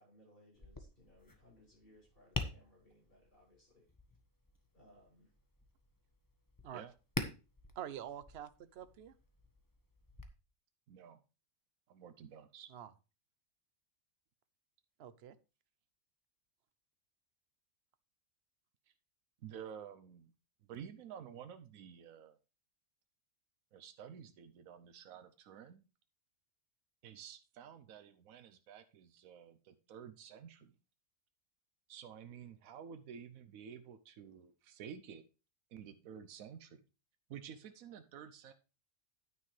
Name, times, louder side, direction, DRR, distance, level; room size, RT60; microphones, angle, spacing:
voice 1, 0.0-3.9 4.7-5.3, left 1 dB, 40° left, 6.3 m, -65 dB
Tap, 0.5-10.2, left 2 dB, 15° left, 1.0 m, -47 dB
voice 2, 7.8-9.1 12.7-12.9 15.0-15.4, right 10 dB, 55° right, 0.9 m, -46 dB
voice 3, 10.9-11.2 11.9-12.7 19.4-20.3 20.6-22.4 23.7-25.8 27.0-30.7 31.9-35.2 35.7-36.8 37.3-38.5, right 8 dB, 85° right, 1.2 m, -51 dB
9.9 x 9.4 x 3.2 m
omnidirectional pair, 1.4 m